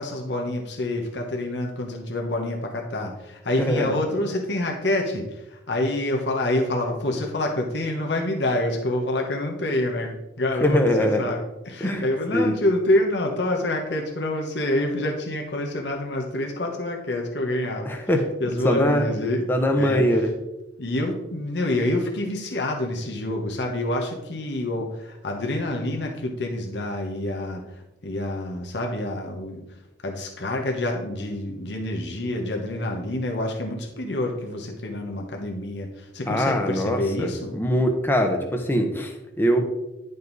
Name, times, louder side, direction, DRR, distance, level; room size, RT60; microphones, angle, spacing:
voice 1, 0.0-17.9 18.4-19.4 19.8-20.0 20.8-29.6 30.0-37.5, left 1 dB, 70° left, 1 dB, 1.2 m, -27 dB
voice 2, 3.6-3.9 10.6-11.3 11.8-12.0 12.3-12.6 17.8-18.3 18.6-19.0 19.5-20.3 36.3-39.6, equal, 10° left, 3 dB, 0.9 m, -22 dB
10.5 x 5.3 x 4.0 m, 0.96 s
head